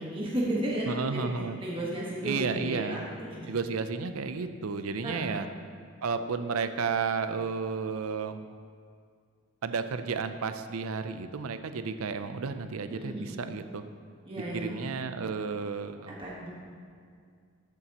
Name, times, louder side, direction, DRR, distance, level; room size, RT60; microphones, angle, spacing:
voice 1, 0.0-1.3 1.6-3.5 5.0-5.5 12.9-13.4 14.2-14.8 16.1-16.5, right 1 dB, 25° right, -5 dB, 1.3 m, -34 dB
voice 2, 0.9-1.6 2.2-3.0 3.5-5.5 6.0-8.4 9.6-13.8 14.5-16.2, right 5 dB, 90° right, 10 dB, 0.5 m, -32 dB
13.5 x 8.3 x 3.0 m, 2.1 s
head